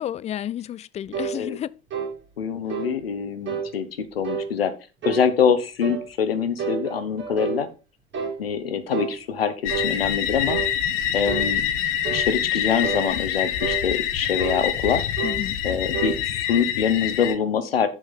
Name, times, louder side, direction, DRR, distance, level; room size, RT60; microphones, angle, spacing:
voice 1, 0.0-1.8 15.2-15.6, left 11 dB, 25° left, 0.4 m, -31 dB
sound 1, 1.1-1.4 1.9-2.2 2.7-2.9 3.5-3.7 4.2-4.5 5.0-5.3 5.8-6.1 6.6-7.6 8.1-8.4 8.9-9.2 9.7-9.9 10.5-10.7 11.3-11.5 12.0-12.3 12.8-13.1 13.6-13.8 14.4-14.6 15.2-15.4 15.9-16.2, right 6 dB, 40° right, 2.5 m, -29 dB
voice 2, 2.4-4.7 5.0-7.7 8.4-10.6 11.1-11.6 12.1-15.0 15.6-17.9, left 7 dB, 75° left, 1.1 m, -24 dB
sound 2, 9.6-17.3, left 10 dB, 55° left, 1.1 m, -26 dB
7.2 x 6.4 x 5.2 m
figure-of-eight pair, 65°, 30 cm